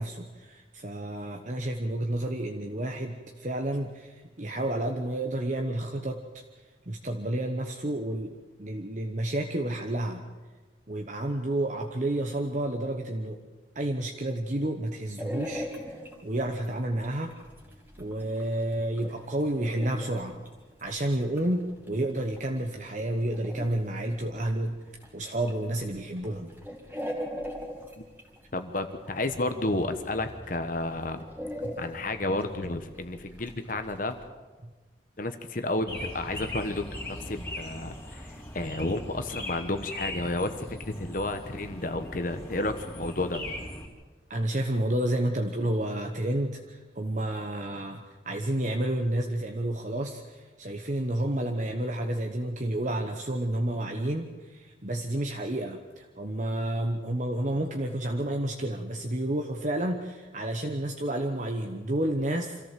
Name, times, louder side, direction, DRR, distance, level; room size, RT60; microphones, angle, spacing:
voice 1, 0.0-6.2 6.9-8.3 8.6-10.2 10.9-13.4 13.7-17.3 18.0-20.4 20.8-24.7 25.1-26.5 31.6-31.7 34.6-34.7 44.3-62.7, right 1 dB, 40° right, 3 dB, 1.1 m, -30 dB
sound 1, 15.2-34.3, equal, 10° right, 2.5 m, -42 dB
voice 2, 28.5-31.2 31.8-34.2 35.2-43.4, left 2 dB, 45° left, 8 dB, 1.2 m, -31 dB
sound 2, 35.9-43.9, left 1 dB, 15° left, 3.6 m, -40 dB
26.0 x 14.0 x 7.5 m, 1.3 s
head